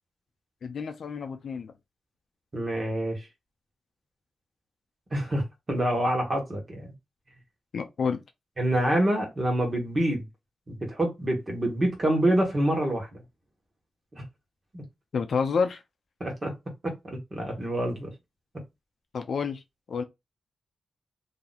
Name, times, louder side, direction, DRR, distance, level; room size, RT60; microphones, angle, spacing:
voice 1, 0.6-1.7 7.7-8.2 15.1-15.8 19.1-19.6 19.9-20.0, left 5 dB, 55° left, 0.6 m, -29 dB
voice 2, 2.5-3.3 5.1-6.9 8.6-10.3 10.7-13.2 14.1-14.2 14.7-14.8 16.2-16.5 16.8-18.1, right 1 dB, 25° right, 1.5 m, -27 dB
2.8 x 2.8 x 4.0 m
wide cardioid pair, 165°, 0 cm